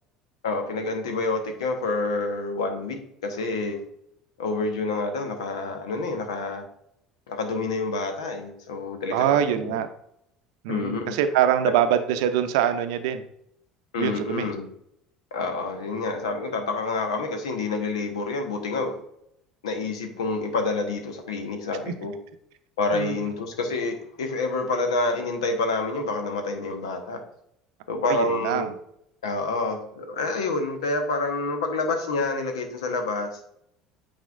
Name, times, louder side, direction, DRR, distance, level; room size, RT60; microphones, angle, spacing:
voice 1, 0.4-3.8 4.4-6.6 7.3-9.7 10.7-11.2 13.9-14.7 15.3-18.9 19.6-22.1 22.8-27.2 27.9-28.7 29.2-33.4, left 3 dB, 70° left, 5 dB, 1.0 m, -28 dB
voice 2, 9.1-9.9 10.6-13.2 14.0-14.5 21.9-22.0 22.9-23.2 28.1-28.7, right 10 dB, 65° right, 9 dB, 0.6 m, -24 dB
9.0 x 4.2 x 2.5 m, 0.74 s
figure-of-eight pair, 65°, 3 cm